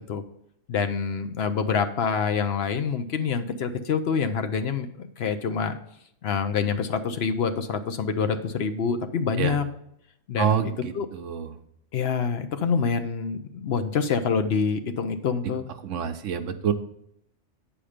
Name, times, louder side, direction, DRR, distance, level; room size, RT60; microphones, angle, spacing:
voice 1, 0.7-5.8 6.2-9.6 10.3-11.1 11.9-15.7, left 6 dB, 60° left, 9 dB, 0.8 m, -26 dB
voice 2, 10.4-11.6 15.8-16.7, right 9 dB, 80° right, 9 dB, 1.0 m, -27 dB
8.6 x 5.0 x 5.0 m, 0.75 s
omnidirectional pair, 1.3 m